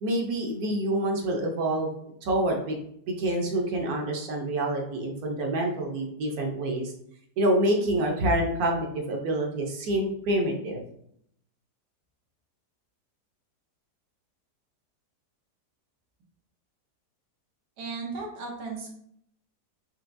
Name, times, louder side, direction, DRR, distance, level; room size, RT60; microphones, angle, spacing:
voice 1, 0.0-1.9 2.2-2.8 3.2-6.9 7.4-10.8, right 1 dB, 70° right, 1 dB, 1.2 m, -27 dB
voice 2, 17.8-18.9, right 4 dB, 85° right, 0 dB, 1.5 m, -35 dB
4.5 x 2.9 x 2.6 m, 0.70 s
omnidirectional pair, 1.7 m